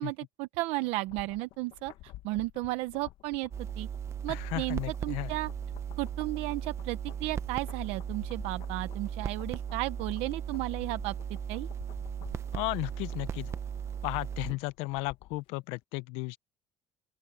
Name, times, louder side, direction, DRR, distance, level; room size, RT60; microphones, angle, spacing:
voice 1, 0.0-1.9 2.2-3.5 3.8-3.9 4.2-5.5 6.0-11.1 11.5-11.7, right 20 dB, 75° right, 0.7 m, -34 dB
sound 1, 0.8-15.5 15.8-15.9, left 15 dB, 60° left, 1.4 m, -52 dB
sound 2, 3.5-14.5, right 8 dB, 25° right, 0.6 m, -37 dB
voice 2, 4.3-5.3 12.5-13.5 14.0-16.4, left 22 dB, 80° left, 0.6 m, -34 dB
open air
cardioid pair, 165°, 10 cm